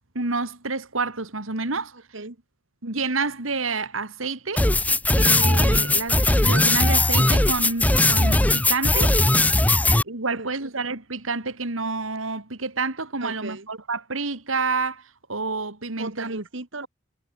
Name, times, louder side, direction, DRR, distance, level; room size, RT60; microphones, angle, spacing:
voice 1, 0.1-2.0 2.8-4.6 5.2-9.2 10.0-15.0 15.3-16.4, right 3 dB, 85° right, 3.0 m, -29 dB
voice 2, 1.9-2.4 9.7-10.0 10.2-10.5 13.2-13.7 16.0-16.9, right 2 dB, 65° right, 2.0 m, -36 dB
sound 1, 4.6-10.0, left 2 dB, 10° left, 0.6 m, -19 dB
head